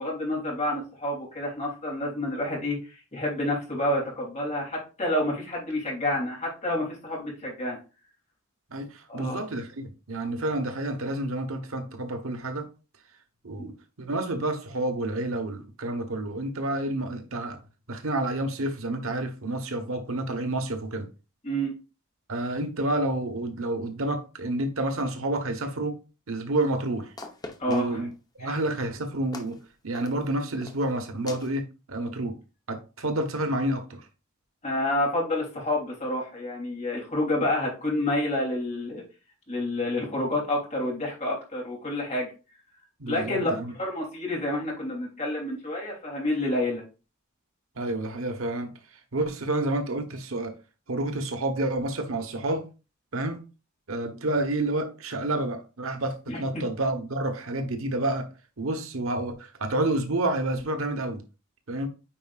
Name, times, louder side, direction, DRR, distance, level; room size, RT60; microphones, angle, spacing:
voice 1, 0.0-7.8 9.1-9.4 13.6-13.7 21.4-21.7 27.6-28.1 28.4-28.6 34.6-39.0 39.5-42.3 43.1-46.8 56.3-56.6, left 1 dB, 35° left, 3.0 m, -29 dB
voice 2, 8.7-12.7 13.4-17.6 17.9-21.1 22.3-25.9 26.3-27.1 27.7-28.1 28.4-29.6 29.8-32.4 32.7-34.0 43.0-43.7 47.8-48.7 49.1-50.5 50.9-52.6 53.1-53.4 53.9-58.3 58.6-61.2 61.7-61.9, right 1 dB, 70° right, 1.1 m, -29 dB
sound 1, 26.6-26.7 27.2-28.1 28.5-28.8 29.3-29.6 29.9-30.3 30.6-30.9 31.3-31.5, left 2 dB, 20° left, 0.9 m, -42 dB
9.1 x 4.8 x 2.4 m
head